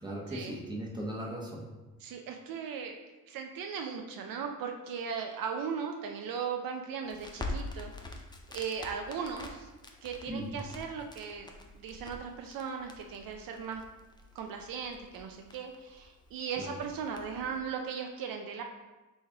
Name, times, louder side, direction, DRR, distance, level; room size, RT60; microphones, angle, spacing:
voice 1, 0.0-1.7 10.3-10.6 16.6-16.7, right 1 dB, 10° right, -3 dB, 1.0 m, -38 dB
voice 2, 2.0-3.0 3.3-8.2 8.5-9.7 10.0-11.5 11.7-13.8 14.3-18.6, right 6 dB, 70° right, 3 dB, 0.5 m, -38 dB
Crackle, 7.0-17.6, left 2 dB, 10° left, 0.5 m, -45 dB
4.1 x 3.3 x 3.4 m, 1.1 s
cardioid pair, 90°, 36 cm